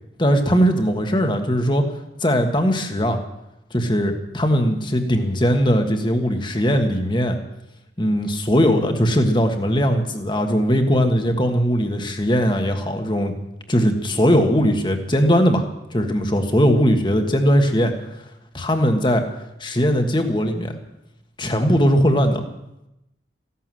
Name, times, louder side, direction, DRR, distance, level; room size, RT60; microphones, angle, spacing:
voice 1, 0.2-1.8 2.2-3.2 3.7-7.4 8.0-13.3 13.7-15.6 15.9-17.9 18.5-19.2 19.6-20.8 21.4-22.5, equal, 25° left, 5 dB, 1.6 m, -19 dB
16.0 x 11.5 x 7.7 m, 0.89 s
head